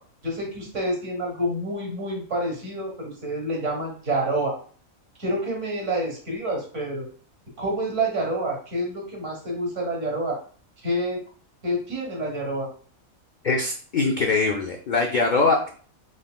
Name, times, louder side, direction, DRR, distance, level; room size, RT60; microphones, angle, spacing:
voice 1, 0.2-4.6 5.2-7.1 7.6-10.4 10.8-11.2 11.6-12.7, right 1 dB, 60° right, 0 dB, 1.7 m, -28 dB
voice 2, 13.4-15.7, left 3 dB, 80° left, 1 dB, 0.4 m, -22 dB
4.1 x 3.8 x 2.2 m, 0.43 s
omnidirectional pair, 1.5 m